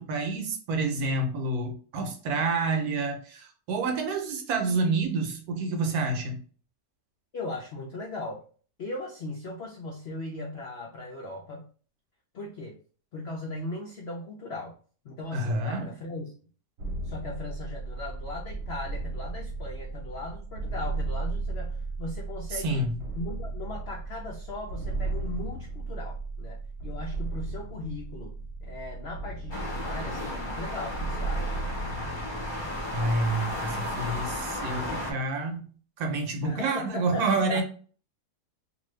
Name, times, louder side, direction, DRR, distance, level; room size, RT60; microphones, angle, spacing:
voice 1, 0.0-6.4 15.3-15.9 22.5-22.9 32.9-37.6, right 3 dB, 70° right, 1.1 m, -28 dB
voice 2, 7.3-8.4 8.8-11.7 12.3-12.7 13.1-14.7 15.0-16.3 17.0-22.8 23.1-31.6 36.4-37.6, left 2 dB, 80° left, 0.5 m, -38 dB
sound 1, 16.8-34.5, right 3 dB, 45° right, 0.9 m, -35 dB
sound 2, 29.5-35.1, left 1 dB, 30° left, 0.5 m, -34 dB
2.6 x 2.6 x 3.1 m
omnidirectional pair, 1.7 m